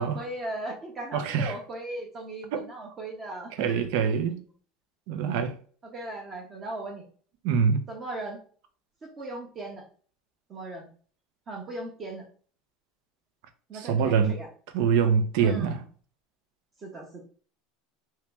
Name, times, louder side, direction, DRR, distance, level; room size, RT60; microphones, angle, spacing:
voice 1, 0.0-3.9 5.8-7.1 7.9-8.4 9.0-9.9 10.5-10.9 11.5-12.2 13.7-14.5 15.4-15.8 16.8-17.2, right 2 dB, 25° right, 0.9 m, -38 dB
voice 2, 1.1-1.5 2.5-2.6 3.6-4.4 5.1-5.5 7.4-7.8 13.8-14.4 14.7-15.8, right 6 dB, 70° right, 0.7 m, -24 dB
2.9 x 2.9 x 3.4 m
supercardioid pair, 145°, 0 cm